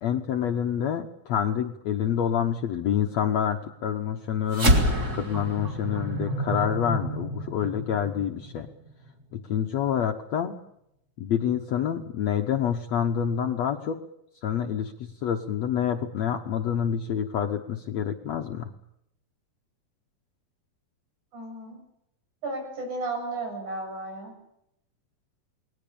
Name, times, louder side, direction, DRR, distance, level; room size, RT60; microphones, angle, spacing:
voice 1, 0.0-8.7 9.3-10.6 11.2-14.0 14.4-18.7, left 9 dB, 65° left, 4 dB, 1.9 m, -27 dB
sound 1, 4.5-9.2, right 1 dB, 25° right, 3.5 m, -27 dB
voice 2, 21.3-21.8 22.4-24.3, right 2 dB, 55° right, 4 dB, 8.8 m, -33 dB
29.0 x 21.0 x 7.0 m, 0.79 s
omnidirectional pair, 4.1 m